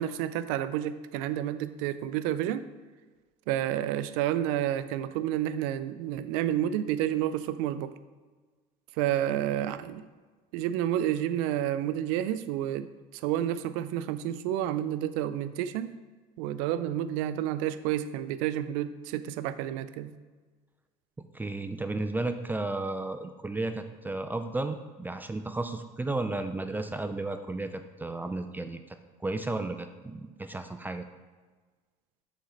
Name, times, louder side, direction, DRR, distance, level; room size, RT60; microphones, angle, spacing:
voice 1, 0.0-2.7 3.5-7.9 8.9-10.1 10.5-15.9 16.4-20.1, right 11 dB, 85° right, 13 dB, 0.4 m, -30 dB
voice 2, 21.3-29.0 29.2-31.0, right 2 dB, 10° right, 8 dB, 0.4 m, -33 dB
6.6 x 4.2 x 3.9 m, 1.4 s
supercardioid pair, 110°, 17 cm